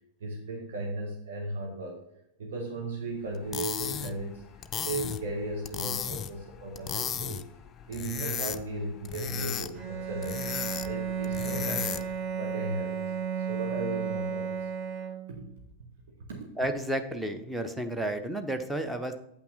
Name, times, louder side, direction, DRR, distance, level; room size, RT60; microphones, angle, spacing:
voice 1, 0.2-2.0 2.4-4.4 4.8-7.5 7.9-10.5 10.8-12.0 12.3-14.7 14.9-15.4 16.3-16.5, right 2 dB, 60° right, 1 dB, 1.4 m, -36 dB
sound 1, 3.3-12.2, left 8 dB, 25° left, 0.5 m, -36 dB
Bowed string instrument, 9.7-15.5, right 7 dB, 40° right, 1.2 m, -34 dB
voice 2, 16.6-19.2, right 1 dB, 5° right, 7 dB, 0.8 m, -31 dB
8.6 x 5.8 x 3.9 m, 0.81 s
figure-of-eight pair, 90°, 0 cm